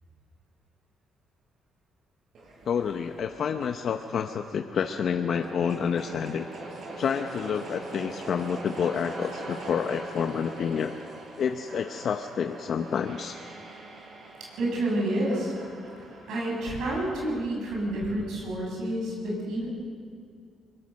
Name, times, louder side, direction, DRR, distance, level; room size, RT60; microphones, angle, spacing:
sound 1, 2.3-18.4, right 2 dB, 65° right, 5.6 m, -43 dB
voice 1, 2.6-6.5 7.0-10.9 11.4-13.4, left 7 dB, 60° left, 7 dB, 0.8 m, -29 dB
voice 2, 14.6-15.5 16.3-19.7, right 1 dB, 80° right, -3 dB, 7.0 m, -29 dB
23.0 x 21.0 x 6.5 m, 2.2 s
cardioid pair, 90°, 0 cm